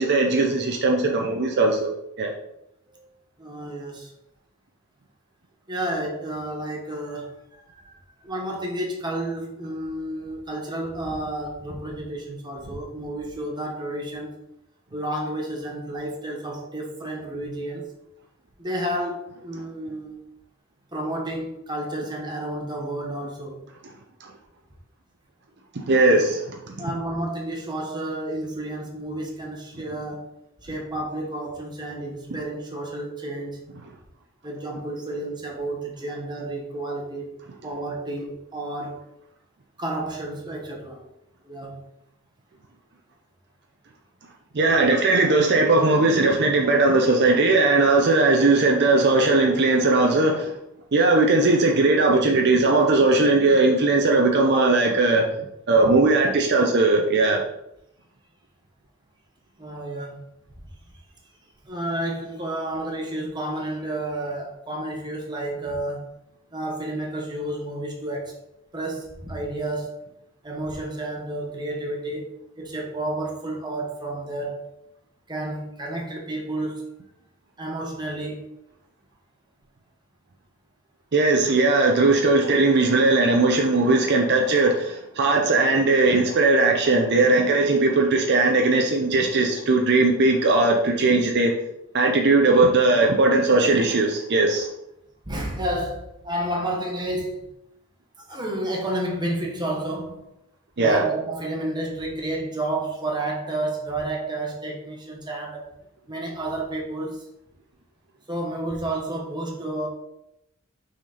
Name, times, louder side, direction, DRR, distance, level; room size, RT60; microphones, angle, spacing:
voice 1, 0.0-1.9 2.2-2.3 25.9-26.4 44.5-50.5 50.9-55.2 55.7-57.4 81.1-91.5 91.9-94.7 100.8-101.0, right 2 dB, 55° right, 2 dB, 0.7 m, -19 dB
voice 2, 3.4-4.1 5.7-14.3 14.9-17.9 18.6-20.1 20.9-23.6 26.8-30.3 30.6-33.6 34.4-37.4 37.6-39.0 39.8-41.0 41.4-41.8 54.5-54.6 59.6-60.3 61.6-66.1 66.5-68.3 68.7-69.9 70.4-72.3 72.6-74.6 75.3-76.8 77.6-78.4 95.2-97.4 98.2-100.2 100.8-105.7 106.1-107.2 108.3-109.9, right 1 dB, 20° right, -1 dB, 1.4 m, -31 dB
6.0 x 4.2 x 4.2 m, 0.81 s
head